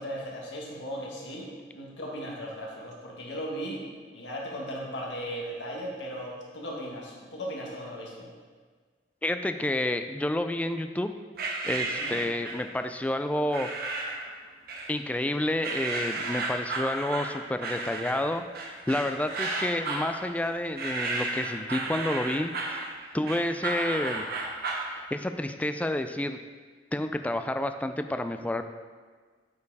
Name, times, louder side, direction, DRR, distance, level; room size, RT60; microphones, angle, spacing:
voice 1, 0.0-3.8 4.1-8.3 11.8-12.2, equal, 80° left, -2 dB, 1.6 m, -37 dB
voice 2, 9.2-11.1 11.6-13.7 14.9-18.4 18.9-22.8 23.1-24.3 24.9-26.4 26.9-28.6, left 1 dB, 10° left, 8 dB, 0.3 m, -29 dB
sound 1, 11.4-12.7 13.5-14.3 14.7-15.3 15.6-24.9, right 3 dB, 60° right, 1.0 m, -33 dB
8.5 x 4.6 x 4.7 m, 1.5 s
head